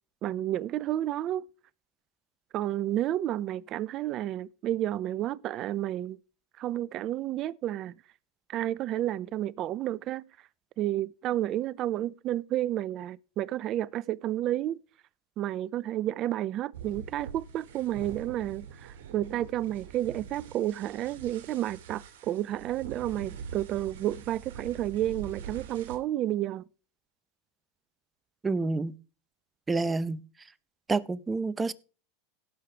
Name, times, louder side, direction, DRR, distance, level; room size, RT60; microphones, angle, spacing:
voice 1, 0.2-1.4 2.5-6.2 6.6-7.9 8.5-10.2 10.8-14.8 15.4-26.6, right 13 dB, 45° right, 0.6 m, -31 dB
sound 1, 16.7-26.0, right 7 dB, 75° right, 2.4 m, -44 dB
voice 2, 28.4-28.9 29.7-30.2 30.9-31.7, right 3 dB, 15° right, 0.8 m, -28 dB
17.0 x 6.7 x 3.4 m
hypercardioid pair, 100°, 0 cm